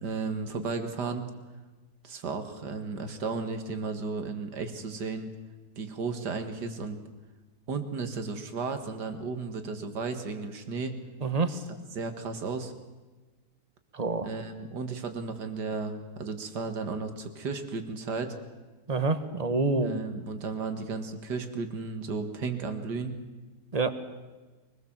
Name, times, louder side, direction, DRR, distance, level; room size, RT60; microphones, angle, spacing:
voice 1, 0.0-1.3 2.0-5.3 5.8-7.0 7.7-11.0 11.5-11.6 12.0-12.7 14.2-18.3 19.8-23.1, right 4 dB, 85° right, 7 dB, 2.4 m, -34 dB
voice 2, 11.2-11.5 13.9-14.3 18.9-20.0 23.7-23.9, right 3 dB, 25° right, 10 dB, 1.4 m, -27 dB
24.0 x 20.0 x 7.3 m, 1.2 s
omnidirectional pair, 1.8 m